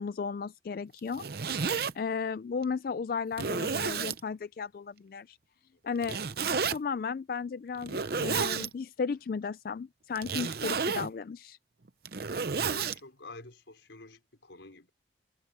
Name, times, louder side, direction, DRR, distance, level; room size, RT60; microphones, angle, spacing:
voice 1, 0.0-1.4 1.9-5.4 5.8-6.2 6.7-11.6, left 5 dB, 50° left, 0.3 m, -35 dB
Zipper (clothing), 1.0-1.9 2.6-2.7 3.3-4.2 6.0-6.8 7.8-8.7 10.2-11.1 11.9-13.0, right 5 dB, 55° right, 0.7 m, -31 dB
voice 2, 12.5-14.9, left 2 dB, 80° left, 4.5 m, -48 dB
head